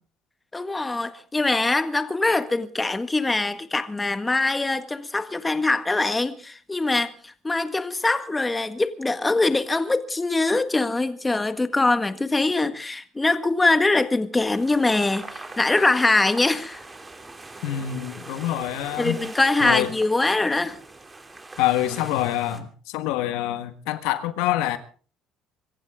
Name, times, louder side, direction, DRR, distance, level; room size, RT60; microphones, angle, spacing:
voice 1, 0.5-16.8 19.0-20.8, left 2 dB, 15° left, 1.7 m, -23 dB
sound 1, 14.4-22.6, right 2 dB, 20° right, 3.2 m, -41 dB
voice 2, 17.6-19.2 19.6-19.9 21.6-24.8, left 13 dB, 85° left, 1.5 m, -26 dB
25.5 x 15.0 x 3.7 m
supercardioid pair, 90°, 0 cm